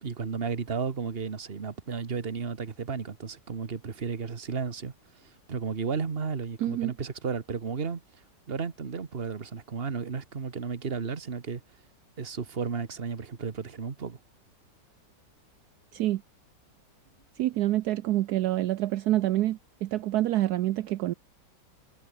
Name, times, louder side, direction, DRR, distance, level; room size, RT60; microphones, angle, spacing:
voice 1, 0.0-4.9 5.5-8.0 8.5-11.6 12.2-14.2, right 5 dB, 35° right, 1.6 m, -33 dB
voice 2, 6.6-6.9 15.9-16.2 17.4-21.1, right 14 dB, 70° right, 1.1 m, -27 dB
omnidirectional pair, 1.9 m